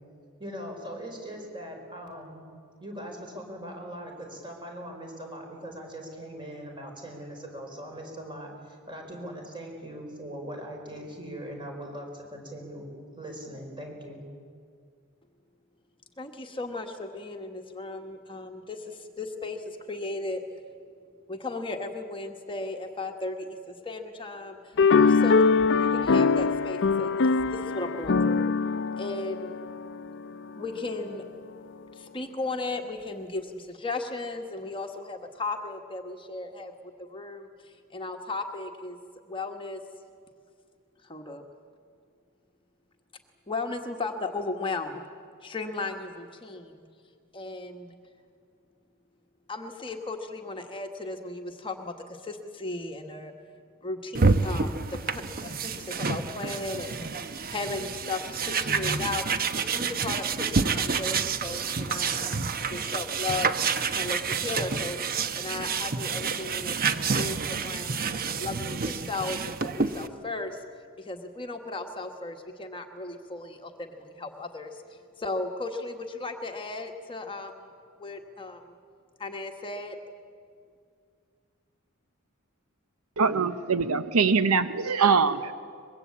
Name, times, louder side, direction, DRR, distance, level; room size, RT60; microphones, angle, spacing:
voice 1, 0.4-2.4 2.8-12.8 13.2-14.2, equal, 20° right, 2 dB, 5.0 m, -40 dB
voice 2, 16.2-20.4 21.3-24.7 25.1-25.5 25.8-28.5 29.0-29.5 30.6-31.2 31.9-39.0 39.3-39.8 41.0-41.4 43.5-45.0 45.4-46.7 47.3-47.9 49.5-53.3 53.8-59.2 59.5-63.5 63.9-66.8 67.1-68.1 68.4-70.6 71.0-77.7 78.0-78.7 79.2-80.0, left 3 dB, 25° left, 4 dB, 1.3 m, -36 dB
sound 1, 24.8-30.3, left 4 dB, 60° left, 0.6 m, -23 dB
sound 2, 54.1-70.1, right 5 dB, 45° right, 1.0 m, -28 dB
voice 3, 83.2-85.5, right 5 dB, 85° right, 12 dB, 0.9 m, -23 dB
23.5 x 22.0 x 8.5 m, 2.2 s
head